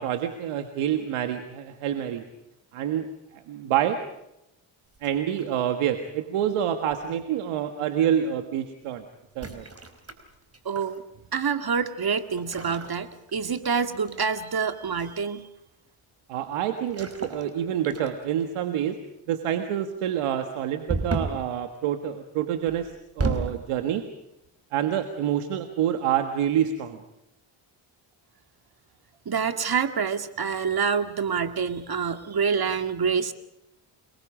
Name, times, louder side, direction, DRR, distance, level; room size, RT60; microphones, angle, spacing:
voice 1, 0.0-2.3 2.7-4.0 5.0-9.0 9.3-9.6 16.3-19.0 19.3-24.1 24.7-27.0, right 10 dB, 90° right, 7 dB, 1.7 m, -27 dB
sound 1, 4.9-5.7 6.9-7.2 9.3-11.0 12.4-13.7 14.1-14.4 16.8-17.5 17.8-18.4 20.9-21.5 22.7-23.6, right 3 dB, 30° right, 4.6 m, -33 dB
voice 2, 10.6-11.0 11.3-15.5 29.3-33.3, right 6 dB, 45° right, 9 dB, 2.2 m, -27 dB
29.5 x 22.5 x 5.0 m, 0.87 s
cardioid pair, 65°, 50 cm